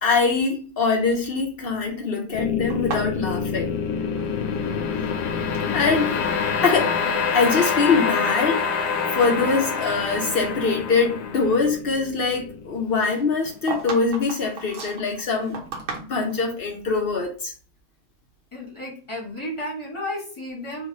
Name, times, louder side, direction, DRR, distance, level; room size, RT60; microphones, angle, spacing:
voice 1, 0.0-3.7 5.7-6.1 6.6-15.6 16.0-17.5, left 4 dB, 65° left, 1 dB, 0.5 m, -23 dB
sound 1, 2.3-13.5, left 6 dB, 85° left, 1.2 m, -26 dB
sound 2, 2.7-4.7 4.9-5.7 6.4-6.9 7.2-7.5 8.1-8.2 8.8-10.3 10.6-10.8 13.0-16.5, right 4 dB, 55° right, 1.1 m, -36 dB
Bowed string instrument, 5.6-11.6 12.3-12.4 12.7-12.8, right 6 dB, 90° right, 1.2 m, -39 dB
voice 2, 18.5-20.9, left 1 dB, 20° left, -2 dB, 1.0 m, -33 dB
3.3 x 2.4 x 3.9 m, 0.39 s
omnidirectional pair, 1.7 m